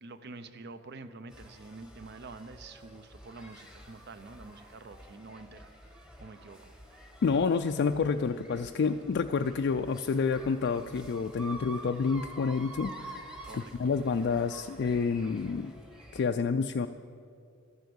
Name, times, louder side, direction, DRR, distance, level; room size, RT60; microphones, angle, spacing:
voice 1, 0.0-6.7 13.4-13.9, right 3 dB, 55° right, 11 dB, 0.7 m, -47 dB
sound 1, 1.3-16.2, right 1 dB, 5° right, 1.1 m, -49 dB
voice 2, 7.2-15.7 16.1-16.9, left 5 dB, 55° left, 6 dB, 0.3 m, -29 dB
13.0 x 9.4 x 7.0 m, 2.4 s
head